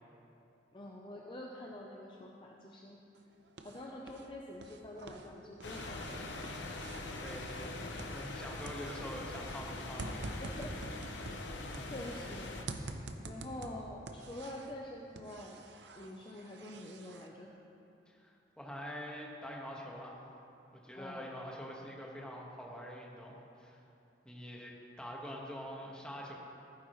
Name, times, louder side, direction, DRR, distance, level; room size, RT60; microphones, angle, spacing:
voice 1, 0.7-3.0 3.6-6.2 10.4-10.7 11.9-12.6 13.2-15.6 15.9-17.6 20.9-21.3, left 1 dB, 25° left, -1 dB, 0.6 m, -46 dB
sound 1, 3.1-4.3 4.5-8.4 8.6-12.3 12.7-14.8 15.2-17.3, right 2 dB, 65° right, 0.7 m, -47 dB
sound 2, 5.6-12.6, left 2 dB, 75° left, 0.9 m, -43 dB
voice 2, 7.2-7.8 8.1-10.4 11.4-11.9 18.1-20.2 20.8-23.8 24.2-26.3, equal, 5° left, -3 dB, 1.4 m, -45 dB
15.5 x 9.4 x 3.1 m, 2.7 s
head